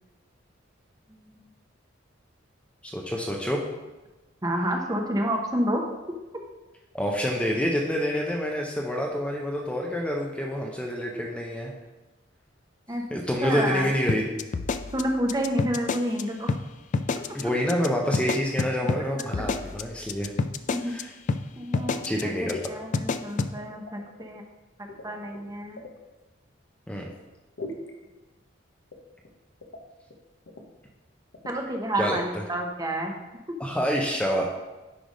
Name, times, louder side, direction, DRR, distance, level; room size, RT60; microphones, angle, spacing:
voice 1, 1.1-1.5 4.4-5.8 11.1-11.2 12.9-13.0 13.4-13.9 14.9-16.5 20.7-20.9 21.6-24.4 25.0-25.8 31.4-33.2 33.5-33.6, right 1 dB, 20° right, 2 dB, 0.9 m, -29 dB
voice 2, 2.8-3.6 6.9-11.7 13.1-14.4 17.3-20.3 20.9-21.1 22.0-22.6 26.9-27.1 32.0-32.2 33.6-34.4, equal, 5° left, -1 dB, 0.6 m, -27 dB
sound 1, 14.1-16.2 16.5-16.6 16.9-17.4 17.7-17.9 18.1-21.0 21.3-21.4 21.7-22.2 22.5-22.7 22.9-23.5, left 4 dB, 40° left, 0.3 m, -27 dB
sound 2, 21.7-22.2 22.5-22.7 23.0-24.3 24.9-26.0 27.6-27.9 28.9-29.3 29.6-29.8 30.1-30.2 30.5-30.7 31.3-31.6, left 2 dB, 75° left, 1.0 m, -41 dB
10.0 x 3.4 x 5.2 m, 1.1 s
head